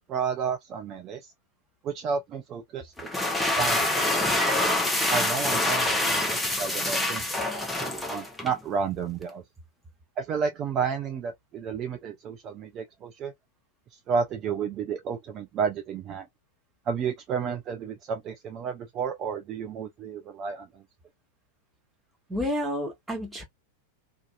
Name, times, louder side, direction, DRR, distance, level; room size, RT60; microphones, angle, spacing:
voice 1, 0.1-1.3 1.8-2.9 3.6-4.0 5.1-9.4 10.2-13.3 13.9-16.3 16.9-20.8, right 6 dB, 30° right, 0.4 m, -31 dB
sound 1, 3.0-8.6, left 2 dB, 5° left, 0.7 m, -26 dB
voice 2, 22.3-23.4, left 1 dB, 10° right, 1.1 m, -30 dB
2.7 x 2.3 x 2.2 m
figure-of-eight pair, 90°, 0 cm